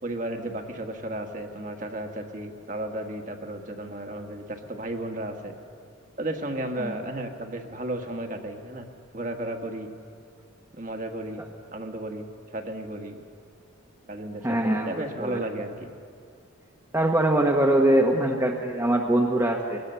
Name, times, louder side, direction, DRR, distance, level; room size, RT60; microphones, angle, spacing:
voice 1, 0.0-5.5 6.2-8.9 9.1-9.9 10.7-11.4 11.7-12.3 12.5-13.2 14.1-15.9 18.1-18.3, right 1 dB, 35° right, 4 dB, 1.6 m, -34 dB
voice 2, 14.4-15.4 16.9-19.8, right 1 dB, 15° right, 0 dB, 1.1 m, -23 dB
23.5 x 19.0 x 7.0 m, 2.3 s
head